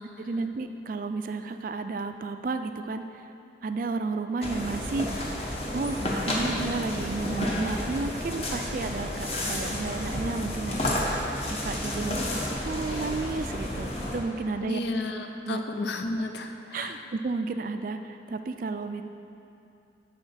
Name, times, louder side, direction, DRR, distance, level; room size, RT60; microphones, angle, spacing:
voice 1, 0.2-3.3 3.6-5.3 5.7-12.3 12.6-14.8 15.5-15.6 16.7-19.0, right 3 dB, 45° right, 8 dB, 0.3 m, -32 dB
sound 1, 4.4-14.2, left 1 dB, 35° left, 1.0 m, -31 dB
voice 2, 14.6-17.1, left 2 dB, 65° left, 5 dB, 0.5 m, -32 dB
9.8 x 4.2 x 5.6 m, 2.7 s
head